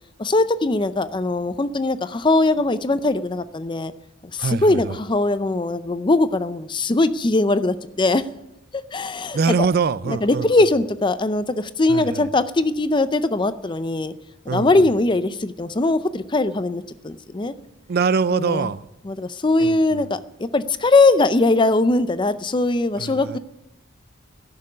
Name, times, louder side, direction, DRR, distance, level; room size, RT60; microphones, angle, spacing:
voice 1, 0.2-3.9 4.3-8.2 8.9-9.4 10.1-14.1 14.5-17.5 18.3-18.7 19.0-23.4, left 2 dB, 25° left, 13 dB, 0.5 m, -20 dB
voice 2, 4.4-5.0 9.3-10.5 11.9-12.3 14.5-14.9 17.9-18.8 19.6-20.0 23.0-23.4, right 5 dB, 50° right, 17 dB, 0.4 m, -24 dB
12.0 x 6.8 x 9.6 m, 0.86 s
head